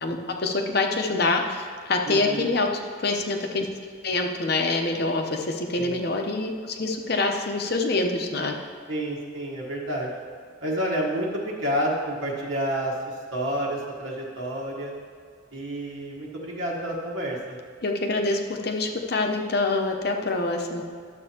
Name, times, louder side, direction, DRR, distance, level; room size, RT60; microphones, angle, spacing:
voice 1, 0.0-2.7 3.0-3.7 4.0-8.6 17.8-20.8, left 3 dB, 50° left, 3 dB, 0.8 m, -25 dB
voice 2, 2.0-2.5 5.8-6.0 8.9-10.1 10.6-14.9 15.5-17.6, right 1 dB, 65° right, -4 dB, 1.4 m, -29 dB
12.0 x 7.5 x 2.9 m, 2.1 s
head